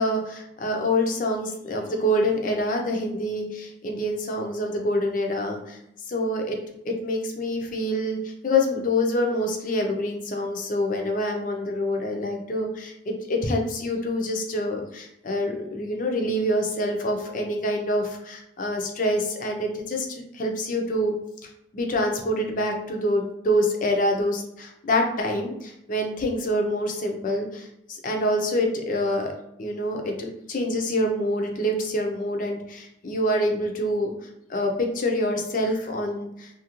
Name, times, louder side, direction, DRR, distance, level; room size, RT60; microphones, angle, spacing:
voice 1, 0.0-5.8 6.1-6.6 6.9-8.2 8.4-21.1 21.7-29.3 29.6-34.1 34.5-36.5, left 1 dB, 45° left, 2 dB, 0.5 m, -26 dB
2.7 x 2.5 x 2.9 m, 0.81 s
head